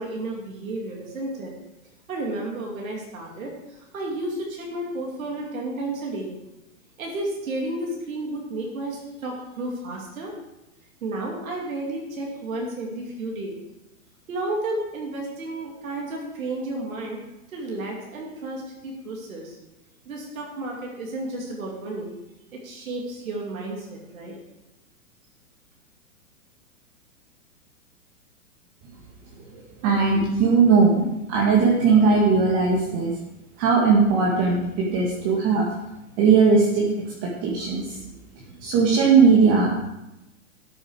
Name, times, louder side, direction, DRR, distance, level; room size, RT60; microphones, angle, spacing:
voice 1, 0.0-1.6 2.1-6.4 7.0-10.3 11.0-13.6 14.3-17.2 17.5-19.6 20.1-22.1 22.6-24.3, right 2 dB, 75° right, -1 dB, 2.7 m, -32 dB
voice 2, 29.5-33.1 33.6-35.7 36.2-36.9 37.2-38.0 38.6-39.8, right 5 dB, 35° right, -3 dB, 2.1 m, -19 dB
13.0 x 7.2 x 4.8 m, 0.93 s
hypercardioid pair, 130°, 41 cm